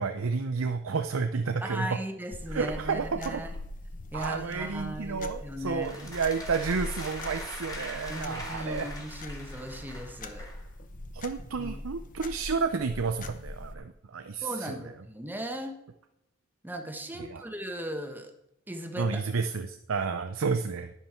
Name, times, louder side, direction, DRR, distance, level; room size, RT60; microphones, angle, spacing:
voice 1, 0.0-2.0 2.5-3.4 4.1-8.9 11.1-14.8 17.2-17.4 19.0-20.9, right 5 dB, 75° right, 7 dB, 0.6 m, -31 dB
voice 2, 1.6-3.5 4.1-6.1 8.1-10.5 11.6-11.7 14.4-15.8 16.6-18.3 18.7-19.2, right 1 dB, 10° right, 5 dB, 1.3 m, -37 dB
sound 1, 2.3-13.8, left 1 dB, 40° left, 0.9 m, -42 dB
sound 2, 5.8-10.6, left 2 dB, 20° left, 2.6 m, -43 dB
11.0 x 10.0 x 4.4 m, 0.83 s
head